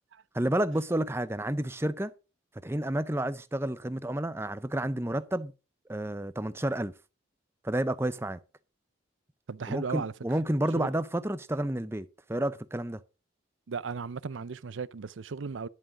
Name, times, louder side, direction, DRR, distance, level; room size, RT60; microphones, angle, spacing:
voice 1, 0.3-2.1 2.6-5.5 5.9-6.9 7.6-8.4 9.7-13.0, right 1 dB, 15° right, 0.6 m, -30 dB
voice 2, 9.5-10.1 10.8-10.9 13.7-15.7, right 5 dB, 85° right, 0.6 m, -35 dB
10.5 x 7.6 x 5.0 m
head